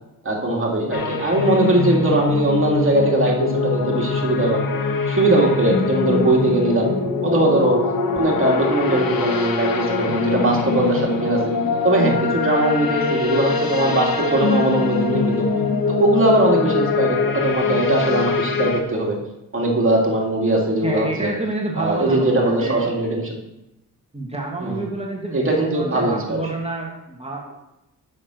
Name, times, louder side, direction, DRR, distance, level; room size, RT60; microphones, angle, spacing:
voice 1, 0.2-6.9 7.2-7.8 8.1-11.4 11.8-15.5 15.9-19.2 19.5-21.3 21.8-23.4 24.6-24.8 25.3-26.4, right 1 dB, 35° right, -1 dB, 2.5 m, -20 dB
sound 1, 0.9-18.8, left 4 dB, 80° left, 1.2 m, -23 dB
voice 2, 20.8-22.8 24.1-27.5, right 2 dB, 15° right, -1 dB, 1.8 m, -28 dB
7.6 x 6.3 x 6.4 m, 0.92 s
cardioid pair, 80°, 35 cm